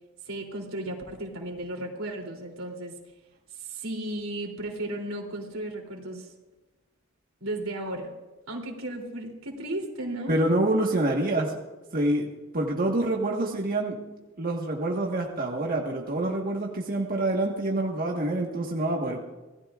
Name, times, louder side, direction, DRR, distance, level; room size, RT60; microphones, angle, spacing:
voice 1, 0.2-2.9 3.5-6.3 7.4-8.1 8.5-10.4, right 1 dB, 90° right, 1 dB, 3.2 m, -35 dB
voice 2, 10.3-11.5 11.9-12.3 12.5-13.9 14.4-19.2, right 1 dB, 45° right, -1 dB, 1.5 m, -26 dB
26.0 x 17.0 x 2.5 m, 1.1 s
head